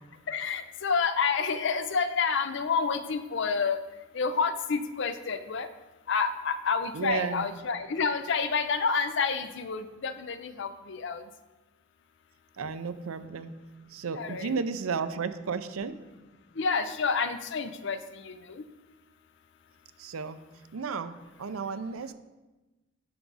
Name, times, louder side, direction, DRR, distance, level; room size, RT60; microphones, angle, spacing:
voice 1, 0.3-3.8 4.1-5.7 6.1-11.2 14.1-14.6 16.6-18.6, left 5 dB, 60° left, 11 dB, 0.5 m, -29 dB
voice 2, 6.9-7.4 12.6-13.5 13.9-15.9 20.0-20.4 20.7-21.1 21.4-22.1, right 5 dB, 85° right, 11 dB, 0.5 m, -33 dB
12.0 x 4.8 x 4.0 m, 1.1 s
head